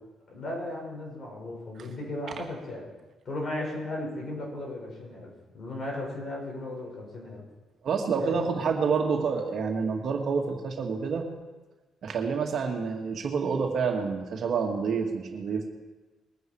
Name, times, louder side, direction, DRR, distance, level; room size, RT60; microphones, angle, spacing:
voice 1, 0.3-2.8 3.2-7.4 8.2-8.5, left 1 dB, 45° left, -2 dB, 6.3 m, -36 dB
voice 2, 7.8-11.2 12.0-15.7, right 5 dB, 60° right, 2 dB, 2.0 m, -28 dB
22.0 x 9.3 x 4.8 m, 1.2 s
cardioid pair, 90°, 0 cm